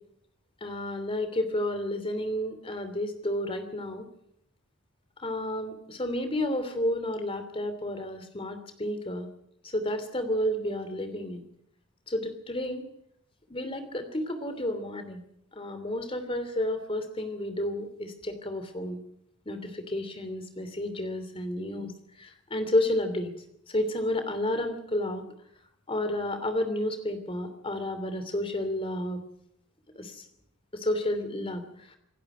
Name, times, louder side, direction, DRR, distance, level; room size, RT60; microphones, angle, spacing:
voice 1, 0.6-4.0 5.2-9.3 9.6-11.4 12.1-12.9 13.5-15.2 15.5-19.0 19.5-21.9 22.2-23.3 23.7-25.2 25.9-29.2 29.9-30.2 30.8-31.6, left 1 dB, 25° left, 9 dB, 3.0 m, -31 dB
26.5 x 11.5 x 9.3 m, 0.74 s
head